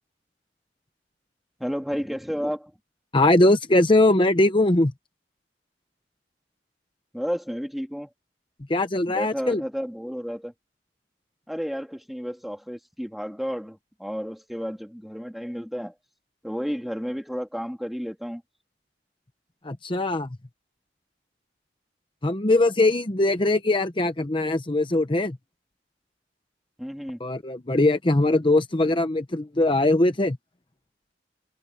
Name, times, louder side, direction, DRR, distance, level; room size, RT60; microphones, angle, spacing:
voice 1, 1.6-2.7 7.1-8.1 9.1-10.5 11.5-15.9 16.4-18.4 26.8-27.2, equal, ahead, 3.1 m, -32 dB
voice 2, 3.1-4.9 8.7-9.6 19.6-20.4 22.2-25.4 27.2-30.4, left 2 dB, 30° left, 0.9 m, -21 dB
head